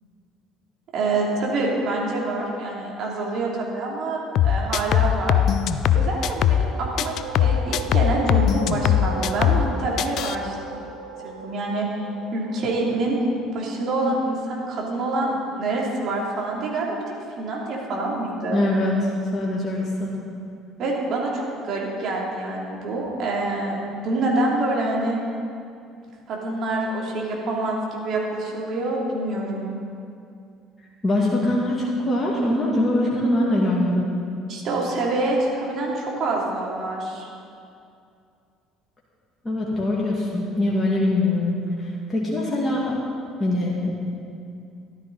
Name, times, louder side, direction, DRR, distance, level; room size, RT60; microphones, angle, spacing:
voice 1, 0.9-5.4 5.9-10.5 11.2-11.9 12.3-13.2 13.5-17.0 17.4-18.6 20.8-25.2 26.3-29.7 34.5-37.3, right 2 dB, 50° right, -3 dB, 2.8 m, -26 dB
sound 1, 4.4-6.7 7.0-9.7 10.0-10.4, left 10 dB, 55° left, 0.4 m, -20 dB
sound 2, 6.6-16.0, right 3 dB, 80° right, 1.0 m, -38 dB
voice 2, 18.5-20.1 31.0-34.1 39.4-43.0 43.4-43.9, left 1 dB, 20° left, -5 dB, 2.5 m, -23 dB
14.0 x 12.0 x 4.0 m, 2.5 s
figure-of-eight pair, 55°, 0 cm